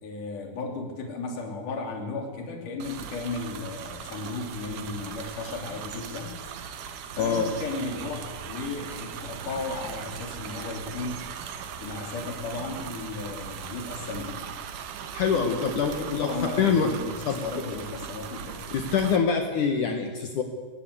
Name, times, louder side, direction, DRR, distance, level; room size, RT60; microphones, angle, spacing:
voice 1, 0.0-6.4 7.2-11.2 11.8-14.4 15.3-18.6, left 3 dB, 45° left, 2 dB, 3.9 m, -35 dB
sound 1, 2.8-19.2, right 8 dB, 75° right, 1.9 m, -39 dB
voice 2, 15.1-16.3 16.6-16.9 17.3-17.4 18.7-20.4, left 6 dB, 80° left, 4 dB, 1.8 m, -25 dB
18.5 x 18.0 x 8.2 m, 1.4 s
omnidirectional pair, 5.8 m